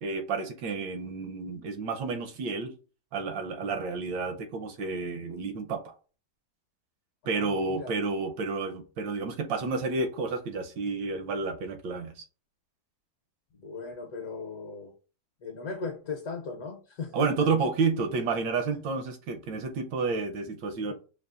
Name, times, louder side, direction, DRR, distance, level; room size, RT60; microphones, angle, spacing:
voice 1, 0.0-2.7 3.1-5.9 7.2-12.2 17.1-20.9, right 4 dB, 75° right, 6 dB, 1.4 m, -30 dB
voice 2, 7.2-7.9 13.6-14.9 15.4-17.3 20.8-20.9, left 4 dB, 65° left, 1 dB, 1.1 m, -38 dB
6.6 x 2.4 x 2.4 m, 0.36 s
omnidirectional pair, 2.0 m